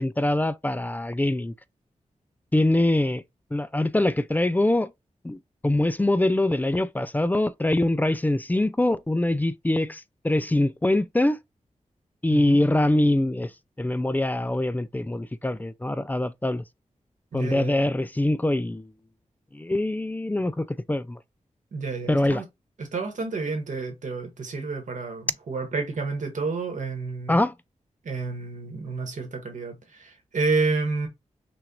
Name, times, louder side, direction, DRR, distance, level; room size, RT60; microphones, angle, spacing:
voice 1, 0.0-1.5 2.5-3.2 3.5-4.9 5.2-11.4 12.2-13.5 13.8-16.6 17.3-18.9 19.5-21.2 22.1-22.4 27.3-27.5, left 1 dB, 15° left, 0.4 m, -24 dB
voice 2, 17.3-17.7 21.7-22.4 22.8-27.4 28.0-31.1, right 4 dB, 85° right, 1.7 m, -30 dB
6.1 x 2.5 x 2.9 m
wide cardioid pair, 85°, 13 cm